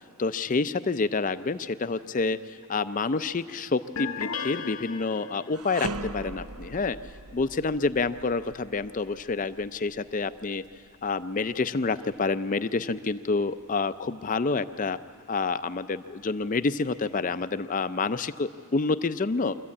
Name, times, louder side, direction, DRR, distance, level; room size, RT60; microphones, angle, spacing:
voice 1, 0.2-7.0 7.3-10.6 11.0-15.0 15.3-19.6, left 4 dB, 35° left, 12 dB, 0.5 m, -28 dB
sound 1, 4.0-5.7, left 6 dB, 70° left, 0.8 m, -35 dB
sound 2, 5.5-14.8 15.2-15.4 16.2-17.1, right 3 dB, 85° right, 0.7 m, -43 dB
24.0 x 14.5 x 8.5 m, 2.7 s
head